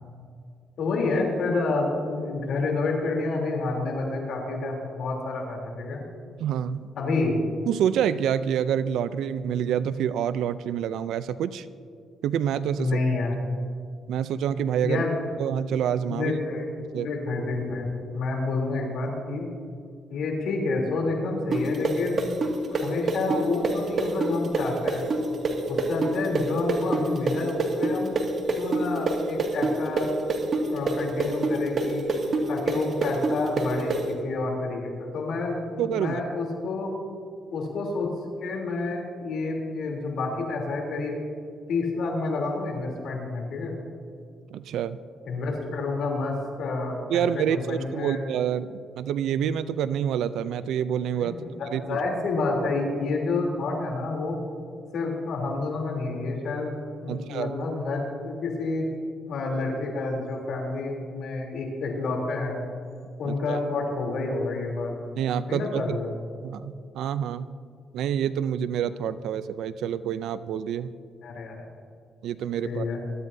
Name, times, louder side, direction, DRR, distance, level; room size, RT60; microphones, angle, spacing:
voice 1, 0.8-6.0 7.0-7.3 12.8-13.3 14.8-15.2 16.1-16.7 16.9-17.8 18.1-19.5 20.1-22.4 22.8-25.1 25.7-28.1 28.5-30.1 30.4-32.0 32.5-36.9 37.5-38.1 38.4-41.2 41.7-43.7 45.2-48.2 51.2-54.4 54.9-56.7 57.0-58.8 59.3-62.6 63.2-64.9 65.4-66.1 71.2-71.5 72.6-73.0, left 3 dB, 70° left, 0 dB, 3.3 m, -29 dB
voice 2, 6.4-6.9 7.7-11.7 12.2-12.9 14.1-15.0 15.4-16.3 16.9-17.1 35.8-36.2 44.5-45.0 47.1-51.4 51.7-52.0 57.1-57.5 63.2-63.6 65.2-66.0 66.4-67.5 67.9-70.9 72.2-72.9, right 9 dB, 80° right, 14 dB, 0.4 m, -27 dB
sound 1, 21.5-29.1 29.4-34.0, right 3 dB, 50° right, 2.1 m, -25 dB
22.0 x 13.0 x 2.7 m, 2.2 s
cardioid pair, 90°, 0 cm